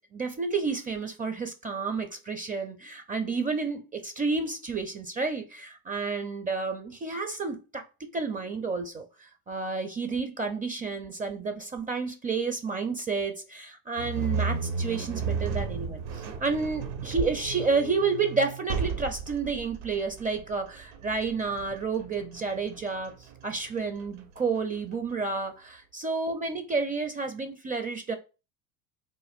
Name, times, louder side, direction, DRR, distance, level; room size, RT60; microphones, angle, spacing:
voice 1, 0.1-23.1 23.4-28.1, right 4 dB, 15° right, 0.5 m, -30 dB
sound 1, 14.0-25.1, right 5 dB, 65° right, 1.0 m, -34 dB
3.6 x 2.2 x 3.5 m
hypercardioid pair, 85°, 49 cm